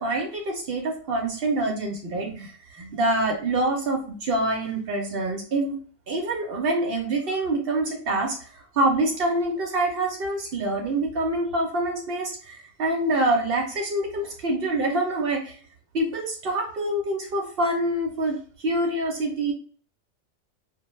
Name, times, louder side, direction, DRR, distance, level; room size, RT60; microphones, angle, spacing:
voice 1, 0.0-5.8 6.1-8.5 8.7-15.6 15.9-19.5, right 2 dB, 60° right, 1 dB, 0.7 m, -26 dB
2.1 x 2.1 x 2.9 m, 0.42 s
omnidirectional pair, 1.3 m